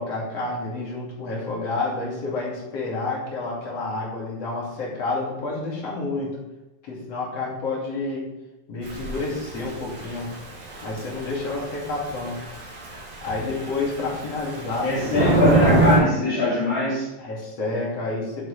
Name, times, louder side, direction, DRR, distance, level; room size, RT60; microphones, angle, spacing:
voice 1, 0.0-6.4 6.8-8.3 8.7-10.4 10.8-12.4 13.2-15.4 17.2-18.5, left 3 dB, 50° left, -4 dB, 3.2 m, -29 dB
Thunder / Rain, 8.8-16.0, right 2 dB, 65° right, 4.0 m, -26 dB
voice 2, 14.8-17.1, left 2 dB, 25° left, -10 dB, 2.6 m, -22 dB
11.5 x 7.3 x 3.3 m, 1.0 s
omnidirectional pair, 3.9 m